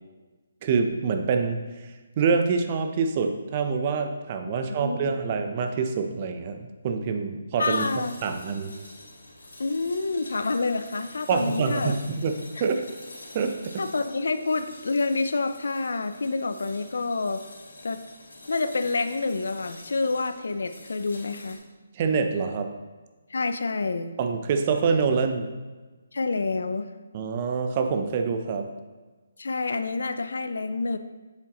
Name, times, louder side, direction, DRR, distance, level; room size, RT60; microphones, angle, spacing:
voice 1, 0.6-1.6 2.2-7.9 8.2-8.7 11.3-12.3 12.6-12.8 13.3-13.8 21.9-22.7 24.2-25.5 27.1-28.7, right 5 dB, 35° right, 6 dB, 0.7 m, -26 dB
voice 2, 4.7-5.2 7.6-8.1 9.6-12.0 12.6-12.7 13.8-17.4 17.8-18.0 18.5-21.6 23.3-24.1 26.1-26.9 29.4-31.0, left 3 dB, 75° left, 10 dB, 0.5 m, -28 dB
sound 1, 7.7-21.6, left 1 dB, 90° left, 2.1 m, -47 dB
7.5 x 7.5 x 3.0 m, 1.3 s
figure-of-eight pair, 150°, 0 cm